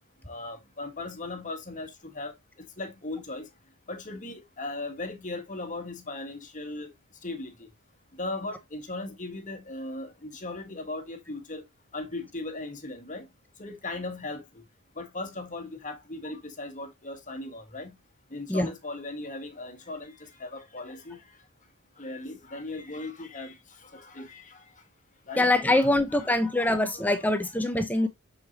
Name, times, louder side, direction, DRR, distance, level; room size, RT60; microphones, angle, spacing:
voice 1, 0.3-2.3 2.8-3.5 3.9-6.9 7.2-7.7 8.2-11.6 11.9-13.3 13.6-14.6 15.0-17.9 18.3-21.2 22.0-24.6 25.3-25.5 25.8-27.3 28.0-28.1, left 2 dB, 35° left, 1.6 m, -38 dB
voice 2, 25.4-28.1, left 1 dB, 5° left, 0.8 m, -24 dB
6.6 x 6.2 x 2.8 m
head